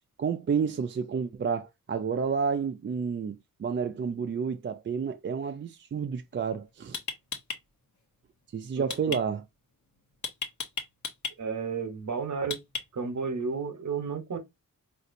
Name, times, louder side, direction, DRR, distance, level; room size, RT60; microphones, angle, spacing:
voice 1, 0.2-7.0 8.5-9.4, right 6 dB, 35° right, 0.4 m, -30 dB
sound 1, 6.3-6.5 6.9-7.6 8.9-9.2 10.2-11.3 12.5-13.1, left 5 dB, 55° left, 1.0 m, -34 dB
voice 2, 8.8-9.2 11.4-12.6 12.9-14.4, right 5 dB, 55° right, 1.0 m, -32 dB
4.1 x 2.5 x 2.5 m
cardioid pair, 70°, 35 cm